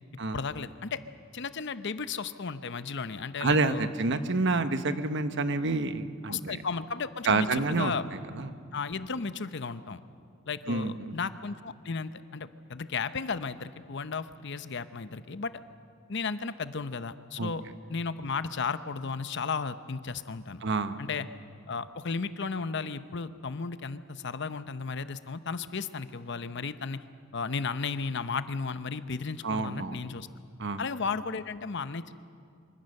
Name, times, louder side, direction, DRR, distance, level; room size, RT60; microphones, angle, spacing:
voice 1, 0.3-1.0 1.3-3.9 6.3-8.0 8.7-10.0 10.5-15.5 16.1-17.6 17.9-20.6 21.0-21.3 21.7-27.0 27.3-30.3 30.8-32.1, left 5 dB, 60° left, 12 dB, 0.8 m, -34 dB
voice 2, 3.4-6.6 7.2-7.9 8.3-8.5 10.7-11.2 17.4-17.5 20.6-21.0 29.4-30.0 30.6-30.8, right 3 dB, 60° right, 10 dB, 1.1 m, -28 dB
25.0 x 24.0 x 6.6 m, 2.4 s
head